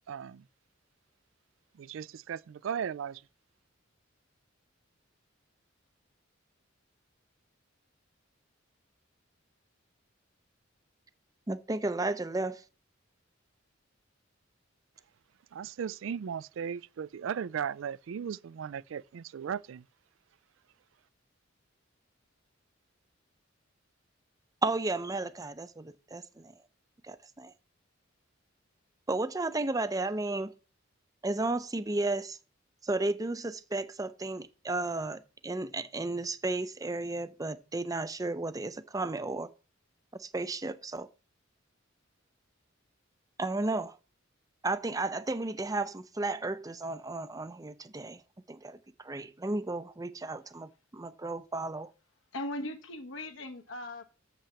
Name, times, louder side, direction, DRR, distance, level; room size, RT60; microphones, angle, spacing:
voice 1, 0.1-0.4 1.8-3.2 15.5-19.8, right 7 dB, 70° right, 0.3 m, -36 dB
voice 2, 11.5-12.6 24.6-26.5 27.0-27.5 29.1-30.5 31.2-32.4 32.8-39.5 40.1-41.1 43.4-44.0 44.6-48.2 48.5-51.9, right 2 dB, 20° right, 0.5 m, -33 dB
voice 3, 52.3-54.0, left 1 dB, 70° left, 1.2 m, -38 dB
7.1 x 5.9 x 6.9 m
head